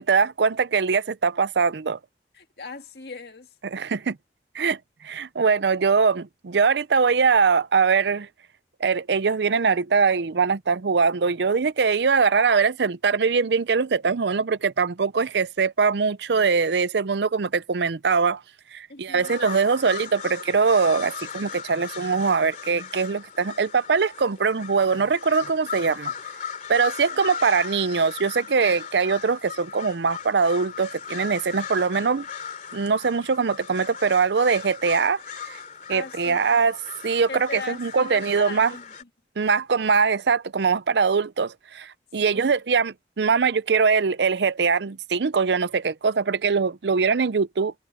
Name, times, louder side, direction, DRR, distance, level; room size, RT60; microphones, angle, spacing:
voice 1, 0.0-2.0 3.6-4.2 4.5-4.8 5.0-8.3 8.8-18.4 18.7-26.1 26.7-32.3 32.7-35.6 35.9-36.8 37.0-38.7 39.4-47.7, right 5 dB, 75° right, 0.6 m, -22 dB
voice 2, 2.3-3.5 18.9-19.4 35.9-36.4 37.3-39.1 42.2-42.5, left 4 dB, 65° left, 2.1 m, -39 dB
sound 1, 19.2-39.0, left 7 dB, 45° left, 2.8 m, -38 dB
head